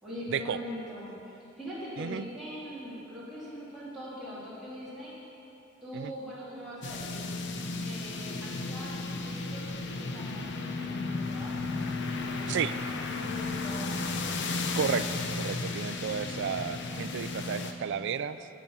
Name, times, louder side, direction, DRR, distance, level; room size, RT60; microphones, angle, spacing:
voice 1, 0.0-5.1 5.8-7.2 7.8-13.9, equal, ahead, -11 dB, 2.9 m, -42 dB
voice 2, 2.0-2.3 5.9-6.1 12.5-12.7 14.8-15.1 15.4-18.5, right 7 dB, 60° right, 13 dB, 0.3 m, -32 dB
sound 1, 6.8-17.7, left 3 dB, 60° left, 0.7 m, -34 dB
10.0 x 9.3 x 5.5 m, 2.9 s
head